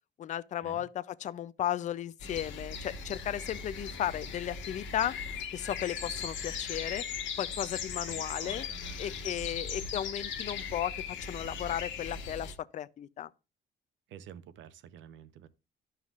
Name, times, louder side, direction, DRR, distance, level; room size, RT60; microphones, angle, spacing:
voice 1, 0.2-5.2 5.5-7.0 7.4-8.7 9.0-11.0 11.3-13.3, left 11 dB, 40° left, 0.4 m, -35 dB
sound 1, 2.2-12.5, left 6 dB, 85° left, 1.3 m, -38 dB
voice 2, 8.1-9.5 14.1-15.5, right 9 dB, 85° right, 0.8 m, -50 dB
13.0 x 5.6 x 2.4 m
cardioid pair, 145°, 19 cm